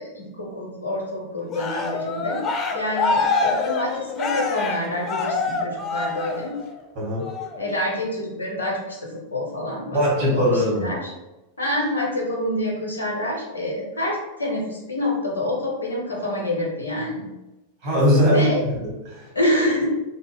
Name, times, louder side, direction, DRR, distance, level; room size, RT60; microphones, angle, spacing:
voice 1, 0.0-2.4 2.7-6.5 7.6-10.0 10.3-11.1 11.6-17.3 18.3-18.6 19.3-19.8, left 1 dB, 75° left, -2 dB, 0.6 m, -27 dB
Cheering, 1.5-6.8 7.2-7.6, left 4 dB, 25° left, 0.4 m, -26 dB
voice 2, 6.9-7.3 9.9-10.9 17.8-19.3, equal, 45° right, -5 dB, 1.4 m, -21 dB
2.7 x 2.0 x 3.3 m, 1.0 s
figure-of-eight pair, 90°, 0 cm